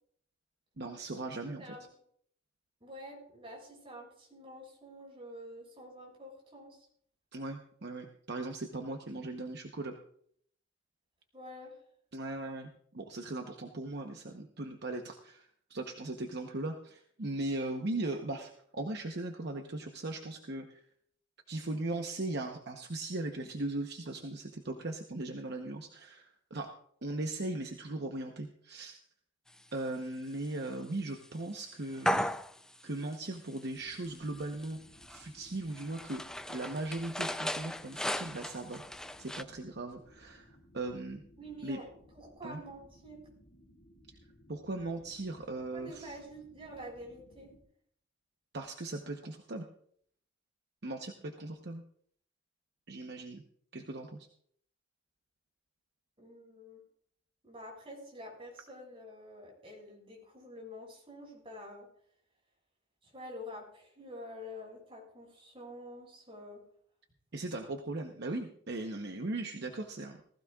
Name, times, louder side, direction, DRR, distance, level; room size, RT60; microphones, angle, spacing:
voice 1, 0.8-1.7 7.3-10.0 12.1-20.8 21.5-26.7 27.0-29.0 29.7-32.3 32.8-34.8 35.1-36.2 36.5-38.8 39.2-41.2 41.6-41.8 42.4-42.6 44.5-46.2 48.5-49.7 50.8-51.8 52.9-53.4 53.7-54.3 67.3-70.2, right 2 dB, 55° right, 4 dB, 0.9 m, -38 dB
voice 2, 2.8-6.9 11.3-11.8 41.4-41.8 42.1-43.2 45.7-47.5 56.2-56.8 57.4-61.9 63.0-66.6, equal, 30° right, -1 dB, 5.9 m, -48 dB
sound 1, 30.4-30.5 31.2-31.3 31.9-32.8 33.1-33.6 33.9-39.4, equal, 5° left, 0.4 m, -36 dB
sound 2, 33.7-47.6, equal, 55° left, 4.1 m, -60 dB
19.5 x 15.0 x 2.4 m, 0.65 s
head